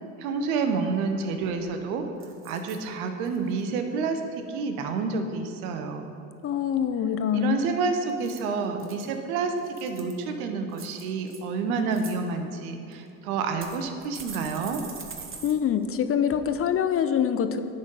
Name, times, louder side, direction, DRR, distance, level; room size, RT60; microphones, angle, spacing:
voice 1, 0.2-2.0 2.4-6.1 7.3-9.5 9.8-14.8, right 4 dB, 80° right, 6 dB, 0.9 m, -29 dB
sound 1, 1.4-1.8 2.2-2.8 3.2-3.6 8.1-9.1 9.6-10.2 10.7-11.4 11.8-12.1 12.9-13.0 13.6-15.5 15.8-15.9 16.3-16.4, right 5 dB, 30° right, 1.1 m, -43 dB
voice 2, 6.4-7.6 15.4-17.6, left 8 dB, 35° left, 10 dB, 0.5 m, -25 dB
10.5 x 4.0 x 5.3 m, 2.8 s
hypercardioid pair, 70°, 42 cm